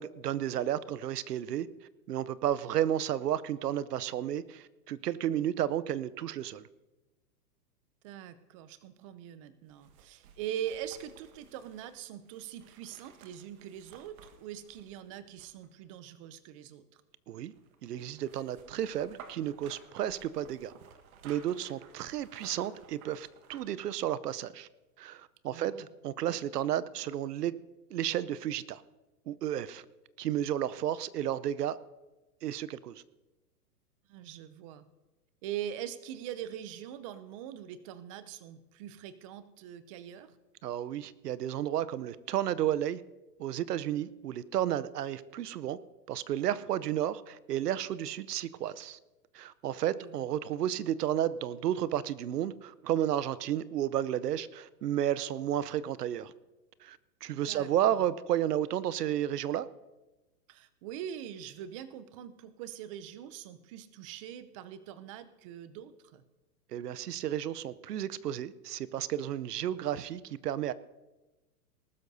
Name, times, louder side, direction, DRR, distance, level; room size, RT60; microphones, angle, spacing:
voice 1, 0.0-1.7 2.1-6.6 17.3-17.5 17.8-20.7 21.2-24.7 25.0-25.7 26.0-27.5 27.9-28.8 29.3-29.8 30.2-31.8 32.4-33.0 40.6-43.0 43.4-45.8 46.1-49.0 49.3-56.3 56.8-59.7 66.7-70.7, right 11 dB, 75° right, 18 dB, 0.8 m, -32 dB
voice 2, 8.0-17.0 25.5-25.9 34.1-34.8 35.4-40.3 49.9-50.4 57.5-58.1 60.5-66.2, right 10 dB, 20° right, 14 dB, 0.4 m, -42 dB
sound 1, 9.7-15.9 17.5-23.8 24.2-24.3, right 7 dB, 60° right, 1.5 m, -55 dB
19.5 x 12.5 x 2.7 m, 1.1 s
hypercardioid pair, 125°, 48 cm